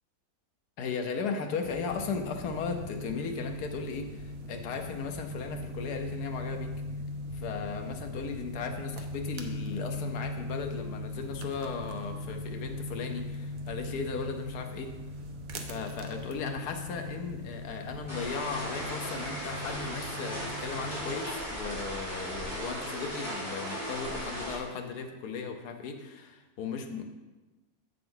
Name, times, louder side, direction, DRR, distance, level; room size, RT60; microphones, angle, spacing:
voice 1, 0.8-6.7 7.3-14.9 15.5-27.0, left 5 dB, 90° left, 5 dB, 1.4 m, -36 dB
Stones tossed in the desert, 1.6-21.1, left 1 dB, 70° right, 1.2 m, -39 dB
sound 1, 18.1-24.6, equal, 10° left, 3.0 m, -37 dB
7.8 x 7.3 x 3.9 m, 1.2 s
omnidirectional pair, 1.6 m